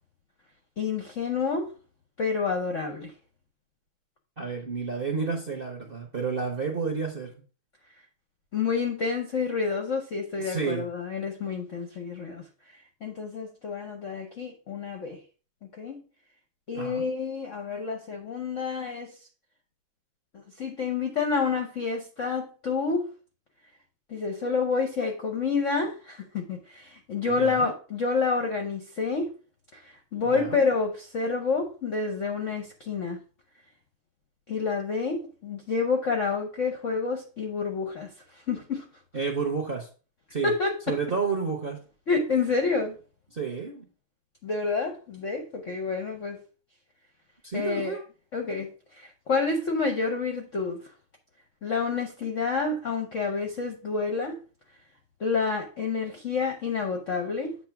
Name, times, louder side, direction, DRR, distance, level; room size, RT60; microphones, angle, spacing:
voice 1, 0.8-1.7 2.2-3.1 8.5-12.4 13.0-15.2 15.8-16.0 16.7-19.1 20.3-23.1 24.1-29.3 29.7-33.2 34.5-38.8 40.4-41.0 42.1-43.0 44.4-46.4 47.5-48.0 48.3-50.9 51.6-54.4 55.2-57.6, left 4 dB, 60° left, 0.8 m, -29 dB
voice 2, 4.4-7.3 10.4-10.9 16.7-17.1 27.3-27.7 30.3-30.6 39.1-39.9 40.3-40.5 40.9-41.8 43.3-43.8 47.4-48.0, right 5 dB, 40° right, 0.8 m, -30 dB
7.9 x 2.9 x 5.7 m
omnidirectional pair, 2.4 m